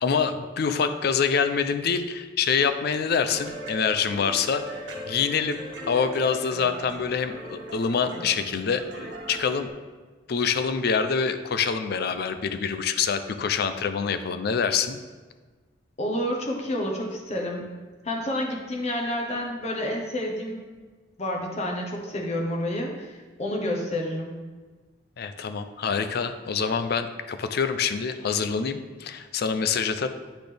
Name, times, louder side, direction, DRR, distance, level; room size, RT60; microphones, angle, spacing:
voice 1, 0.0-9.7 10.3-15.0 25.2-30.1, left 6 dB, 60° left, 10 dB, 0.4 m, -26 dB
sound 1, 3.3-9.7, equal, 80° right, 1.2 m, -39 dB
voice 2, 16.0-17.7 18.0-20.6 21.2-24.3, left 1 dB, 35° left, 0 dB, 1.1 m, -29 dB
10.0 x 4.1 x 3.4 m, 1.4 s
head